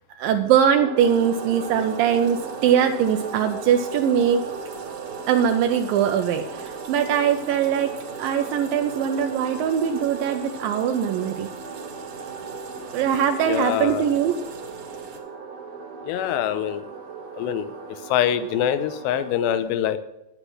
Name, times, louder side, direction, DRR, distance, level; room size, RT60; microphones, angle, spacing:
voice 1, 0.2-4.4 5.3-11.5 12.9-14.4, right 8 dB, 85° right, 5 dB, 2.0 m, -22 dB
sound 1, 0.8-19.4, right 5 dB, 70° right, 3.1 m, -37 dB
sound 2, 1.0-15.2, right 4 dB, 55° right, 2.5 m, -44 dB
voice 2, 13.5-14.0 16.0-16.9 17.3-17.7 18.1-20.0, left 10 dB, 90° left, 12 dB, 2.9 m, -24 dB
9.8 x 9.1 x 6.1 m, 0.87 s
omnidirectional pair, 4.8 m